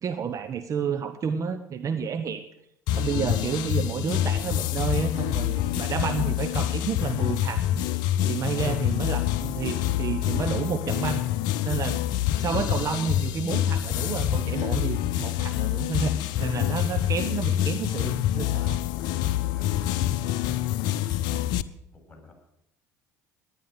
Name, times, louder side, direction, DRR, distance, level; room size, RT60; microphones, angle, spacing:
voice 1, 0.0-2.5 2.9-7.8 8.3-11.3 11.6-12.0 12.4-18.8, right 6 dB, 35° right, 8 dB, 1.1 m, -30 dB
sound 1, 2.9-21.6, left 12 dB, 55° left, 0.7 m, -26 dB
voice 2, 20.4-21.0 21.9-22.3, left 2 dB, 10° left, 2 dB, 7.7 m, -51 dB
18.0 x 10.5 x 6.6 m, 0.78 s
figure-of-eight pair, 60°, 9 cm